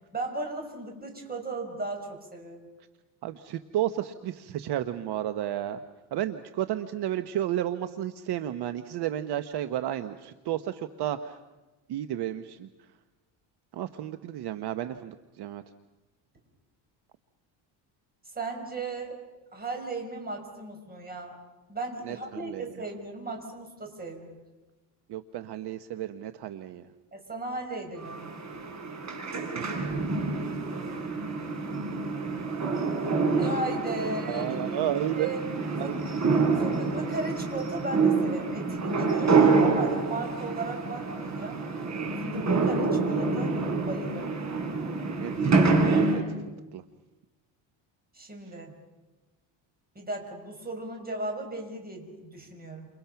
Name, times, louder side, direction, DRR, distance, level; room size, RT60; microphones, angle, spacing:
voice 1, 0.1-2.7 18.3-19.2 19.5-21.4 21.7-24.4 27.1-28.6 33.4-34.5 35.2-35.4 35.8-36.1 36.5-41.6 42.2-43.6 43.8-44.3 48.1-48.7 49.9-52.9, right 2 dB, 20° right, 3 dB, 6.2 m, -36 dB
voice 2, 3.2-5.8 6.1-11.4 11.9-12.7 13.7-15.6 22.0-22.6 25.1-26.8 29.5-29.6 34.0-35.3 35.7-36.0 45.1-46.8, right 12 dB, 60° right, 10 dB, 1.1 m, -32 dB
sound 1, 28.0-46.2, right 4 dB, 35° right, 5.5 m, -27 dB
30.0 x 28.5 x 5.9 m, 1.1 s
cardioid pair, 125°, 45 cm